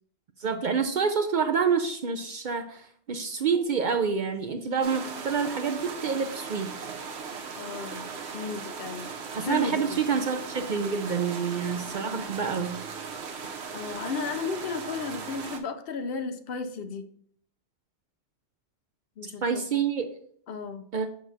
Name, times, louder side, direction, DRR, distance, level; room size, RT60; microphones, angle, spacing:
voice 1, 0.4-6.7 9.3-12.8 19.4-20.1 20.9-21.1, right 6 dB, 55° right, 7 dB, 0.6 m, -27 dB
sound 1, 4.8-15.6, right 5 dB, 75° right, 1.0 m, -38 dB
voice 2, 7.5-10.0 12.2-12.3 13.7-17.0 19.2-19.6 20.5-20.9, left 4 dB, 65° left, 8 dB, 0.7 m, -34 dB
6.3 x 6.0 x 2.6 m, 0.62 s
omnidirectional pair, 1.1 m